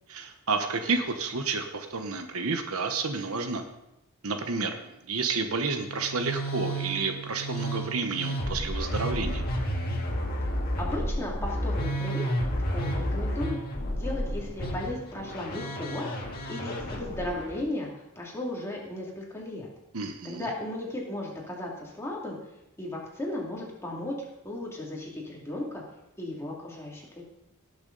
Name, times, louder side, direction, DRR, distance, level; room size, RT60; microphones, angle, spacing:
voice 1, 0.1-3.6 4.2-9.4 19.9-20.5, right 4 dB, 70° right, 6 dB, 1.0 m, -30 dB
Musical instrument, 5.8-17.6, equal, 45° left, 1.9 m, -31 dB
voice 2, 10.8-12.2 12.7-13.6 13.9-19.7 20.2-22.4 22.8-24.1 24.4-25.8 26.2-27.2, left 1 dB, 10° left, -3 dB, 2.5 m, -35 dB
18.0 x 6.9 x 4.0 m, 0.90 s
head